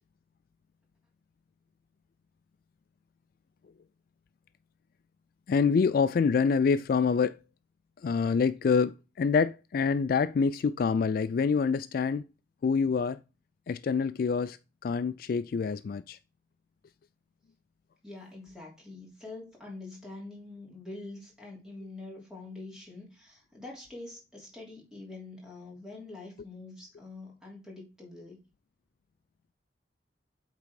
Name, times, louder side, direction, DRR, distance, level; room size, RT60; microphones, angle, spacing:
voice 1, 5.5-7.4 8.0-12.3 12.6-13.2 13.7-14.6 14.8-16.2, left 5 dB, 50° left, 0.3 m, -26 dB
voice 2, 18.0-28.4, left 2 dB, 5° right, 3.0 m, -45 dB
8.4 x 3.8 x 4.7 m
head